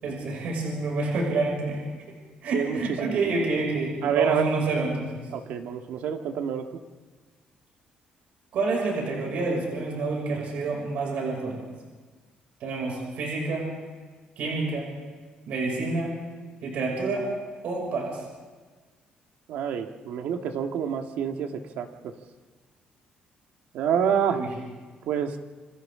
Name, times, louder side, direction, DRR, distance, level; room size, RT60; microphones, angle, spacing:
voice 1, 0.0-1.8 2.4-5.2 8.5-11.6 12.6-13.7 14.4-14.9 15.5-16.1 16.6-17.3 17.6-18.2 24.3-24.5, right 3 dB, 60° right, -1 dB, 6.2 m, -28 dB
voice 2, 2.5-3.2 4.0-4.5 5.3-6.7 19.5-22.1 23.7-24.4 25.1-25.4, right 8 dB, 75° right, 5 dB, 1.7 m, -27 dB
28.0 x 26.0 x 3.8 m, 1.4 s
cardioid pair, 180°, 3 cm